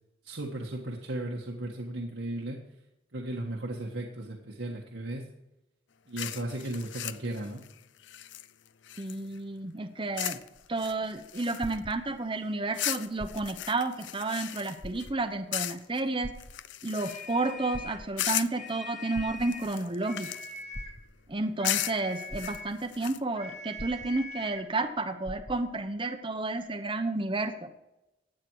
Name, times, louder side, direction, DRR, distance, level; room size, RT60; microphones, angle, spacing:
voice 1, 0.2-2.6 3.1-5.2 6.1-7.6, right 1 dB, 80° right, -1 dB, 1.5 m, -35 dB
sound 1, 6.2-9.4 10.2-10.5 10.8-11.9 12.7-15.1 15.5-16.0 16.4-17.5 18.2-18.7 19.4-20.6 21.6-23.2, left 13 dB, 70° left, 0.5 m, -36 dB
voice 2, 9.0-10.4 10.7-16.3 16.8-20.3 21.3-27.7, right 2 dB, 25° right, 7 dB, 0.9 m, -31 dB
sound 2, 10.4-12.5 13.1-13.8 14.2-14.3 14.8-15.5 16.2-17.0 17.6-18.4 19.1-19.9 20.7-21.4 22.0-22.1 22.3-23.0 23.8-24.6 24.8-24.9 25.2-25.9 26.6-26.7, equal, 15° left, 0.7 m, -44 dB
sound 3, 17.0-18.1 18.5-19.7 20.0-21.0 21.6-22.8 23.3-24.7, left 2 dB, 40° left, 2.2 m, -43 dB
15.5 x 9.4 x 4.8 m, 0.93 s
head